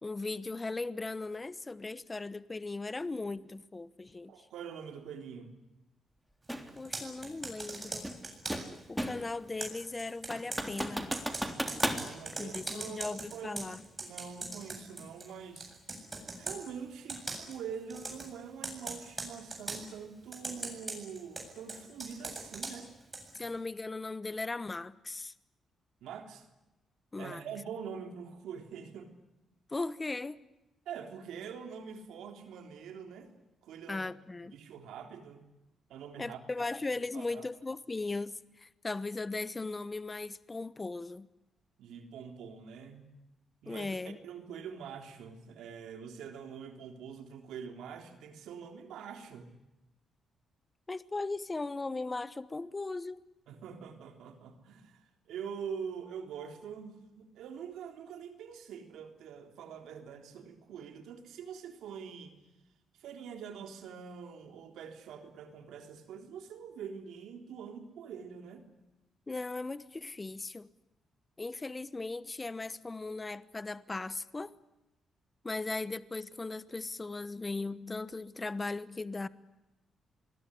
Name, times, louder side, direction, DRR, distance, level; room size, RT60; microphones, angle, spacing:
voice 1, 0.0-4.5 6.8-8.1 8.9-11.1 12.4-13.8 23.4-25.3 27.1-27.4 29.7-30.4 33.9-34.5 36.2-41.3 43.7-44.2 50.9-53.2 69.3-70.7 71.4-74.5 75.4-79.3, left 3 dB, 25° left, 16 dB, 1.0 m, -38 dB
voice 2, 4.3-5.6 11.8-13.6 14.0-15.7 16.3-22.9 26.0-26.5 27.2-29.2 30.9-33.3 33.6-34.1 34.5-35.4 35.9-36.4 37.1-37.4 41.8-43.1 43.6-44.0 44.2-49.5 53.5-62.4 62.9-68.7, right 7 dB, 90° right, 5 dB, 3.6 m, -44 dB
sound 1, 6.5-6.7 8.0-9.4 9.7-9.8 10.3-12.1, equal, ahead, 3.3 m, -34 dB
Computer keyboard, 6.8-8.8 9.6-15.3 15.6-16.6 17.1-17.6 17.9-18.3 18.6-19.8 20.3-23.5, right 2 dB, 25° right, 7.9 m, -41 dB
27.0 x 21.5 x 10.0 m, 0.97 s
cardioid pair, 90°, 0 cm